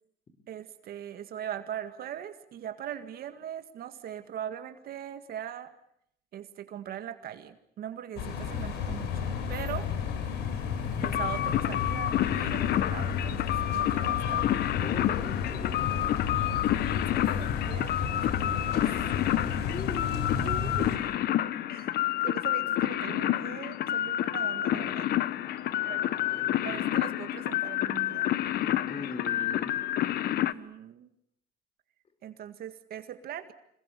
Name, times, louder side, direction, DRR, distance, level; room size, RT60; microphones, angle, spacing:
voice 1, 0.5-5.7 6.3-9.9 11.0-14.4 16.7-18.8 20.4-21.3 21.7-25.1 25.8-26.0 26.4-28.3 30.2-31.1 32.2-33.5, right 10 dB, 65° right, 9 dB, 1.9 m, -41 dB
sound 1, 8.2-21.0, left 7 dB, 85° left, 4.8 m, -32 dB
sound 2, 11.0-30.5, left 13 dB, 65° left, 1.1 m, -29 dB
voice 2, 14.8-16.4 19.4-20.8 25.4-26.8 28.6-29.8, left 4 dB, 35° left, 11 dB, 5.3 m, -42 dB
27.0 x 21.0 x 8.3 m, 0.71 s
cardioid pair, 110°, 17 cm